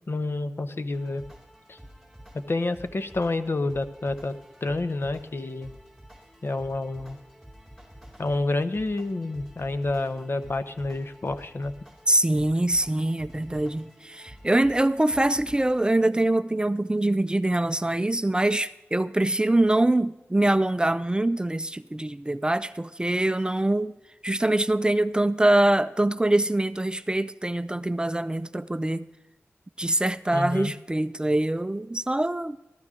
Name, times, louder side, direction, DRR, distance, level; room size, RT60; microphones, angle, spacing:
voice 1, 0.1-1.2 1.7-1.8 2.3-4.4 4.6-5.7 6.4-7.2 8.2-11.7 30.3-30.7, left 2 dB, 55° left, 0.8 m, -29 dB
sound 1, 0.9-15.9, equal, 5° left, 4.4 m, -49 dB
voice 2, 12.1-23.9 24.2-29.1 29.8-32.6, right 1 dB, 20° right, 0.4 m, -24 dB
14.0 x 13.0 x 3.7 m
wide cardioid pair, 70°, 5 cm